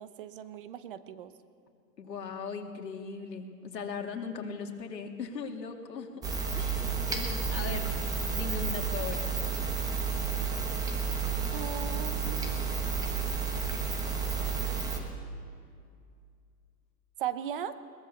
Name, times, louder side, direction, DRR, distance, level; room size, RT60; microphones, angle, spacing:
voice 1, 0.0-1.3 11.5-12.8 17.2-17.7, right 10 dB, 35° right, 13 dB, 0.8 m, -38 dB
voice 2, 2.0-7.9 8.2-9.3, left 5 dB, 85° left, 2 dB, 2.9 m, -39 dB
sound 1, 6.2-15.0, right 5 dB, 5° right, 1.2 m, -31 dB
21.5 x 19.5 x 7.1 m, 2.3 s
hypercardioid pair, 155°, 49 cm